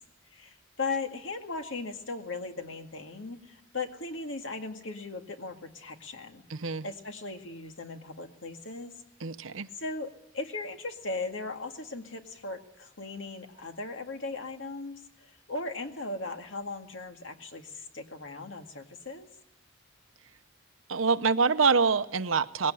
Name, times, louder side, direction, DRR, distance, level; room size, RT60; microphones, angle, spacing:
voice 1, 0.3-8.9 9.7-19.3, left 3 dB, 70° left, 5 dB, 2.1 m, -38 dB
voice 2, 6.5-6.8 9.2-9.7 20.9-22.7, right 5 dB, 85° right, 12 dB, 0.8 m, -25 dB
20.5 x 17.0 x 9.9 m, 0.84 s
head